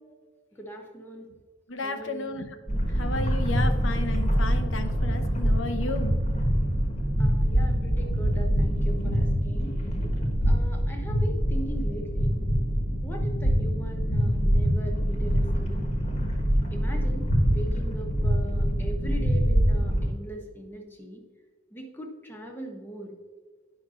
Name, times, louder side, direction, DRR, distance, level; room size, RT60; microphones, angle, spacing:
voice 1, 0.5-1.3 1.8-2.3 7.2-9.8 10.5-12.4 13.0-15.8 16.7-21.2 21.7-23.2, right 1 dB, 10° left, 1 dB, 1.0 m, -40 dB
voice 2, 1.7-2.5 3.0-6.2, left 2 dB, 65° left, 7 dB, 0.8 m, -33 dB
sound 1, 2.7-20.1, equal, 35° left, 1.3 m, -25 dB
10.0 x 6.0 x 2.5 m, 1.4 s
head